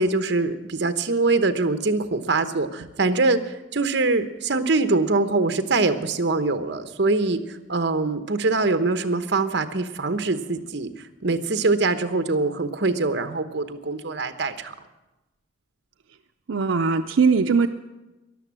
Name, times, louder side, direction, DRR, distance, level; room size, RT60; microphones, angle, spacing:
voice 1, 0.0-10.9 11.2-14.7, right 3 dB, 60° right, 9 dB, 1.0 m, -23 dB
voice 2, 16.5-17.7, right 5 dB, 90° right, 7 dB, 0.5 m, -20 dB
13.5 x 11.5 x 7.4 m, 1.1 s
head